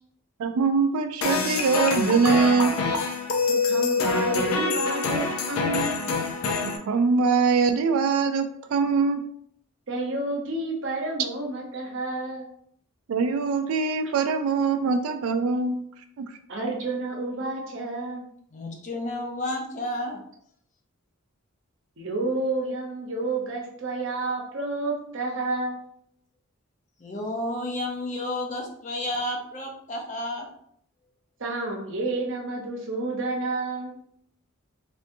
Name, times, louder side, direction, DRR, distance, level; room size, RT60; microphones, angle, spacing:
voice 1, 0.4-2.8 6.6-9.2 13.1-15.8 16.2-16.4, right 4 dB, 90° right, 8 dB, 0.3 m, -23 dB
sound 1, 1.2-6.8, left 4 dB, 80° left, 0.5 m, -25 dB
voice 2, 3.4-6.2 9.9-12.5 16.5-18.3 22.0-25.8 31.4-34.0, right 2 dB, 60° right, 0 dB, 0.8 m, -30 dB
voice 3, 18.5-20.2 27.0-30.5, left 1 dB, 35° left, 1 dB, 0.6 m, -31 dB
3.4 x 2.7 x 2.6 m, 0.66 s
head